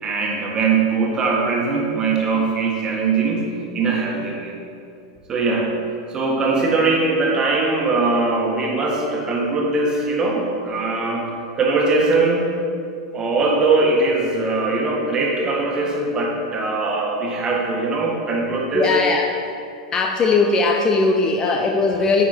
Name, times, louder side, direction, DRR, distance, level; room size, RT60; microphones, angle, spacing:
voice 1, 0.0-4.5 5.3-5.7 6.1-11.3 11.6-12.5 13.1-18.9, right 3 dB, 25° right, -1 dB, 1.6 m, -21 dB
voice 2, 18.7-19.4 19.9-22.2, left 3 dB, 25° left, 3 dB, 0.7 m, -19 dB
9.4 x 5.3 x 4.5 m, 2.5 s
figure-of-eight pair, 90°, 3 cm